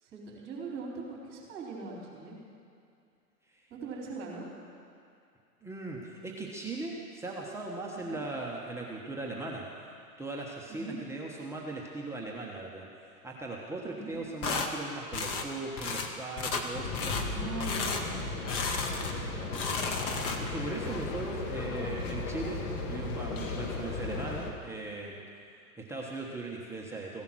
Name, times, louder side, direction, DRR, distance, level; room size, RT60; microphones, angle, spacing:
voice 1, 0.0-2.4 3.7-4.5 7.9-8.2 10.7-11.0 13.9-14.2 17.3-18.2, right 3 dB, 25° right, -2 dB, 4.3 m, -41 dB
voice 2, 5.6-9.7 10.2-17.2 18.6-25.2 25.8-27.2, right 2 dB, 5° right, -3 dB, 1.2 m, -39 dB
sound 1, 14.4-14.7 15.1-15.5 15.8-16.1 16.4-16.7 16.9-17.3 17.6-18.0 18.5-19.2 19.5-20.6, left 4 dB, 10° left, 0.4 m, -33 dB
sound 2, 16.7-24.5, left 3 dB, 50° left, 2.0 m, -36 dB
16.0 x 11.0 x 6.2 m, 2.4 s
hypercardioid pair, 120°, 47 cm